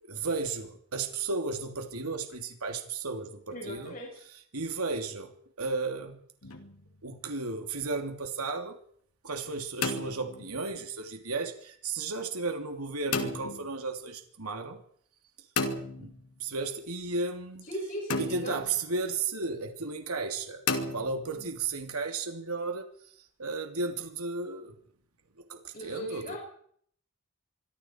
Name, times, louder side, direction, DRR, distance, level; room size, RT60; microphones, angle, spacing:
voice 1, 0.0-3.9 4.5-6.2 7.0-8.8 9.2-14.8 16.0-16.1 16.4-17.7 18.2-20.6 20.9-24.7 25.4-26.4, right 3 dB, 90° right, 5 dB, 3.0 m, -34 dB
voice 2, 3.5-4.2 17.6-18.5 25.7-26.4, equal, 40° left, -2 dB, 7.3 m, -38 dB
sound 1, 6.4-7.0 9.5-10.8 13.1-13.7 15.6-16.5 18.1-18.8 20.7-21.5, left 3 dB, 85° left, 2.8 m, -33 dB
26.0 x 23.5 x 4.7 m, 0.62 s
head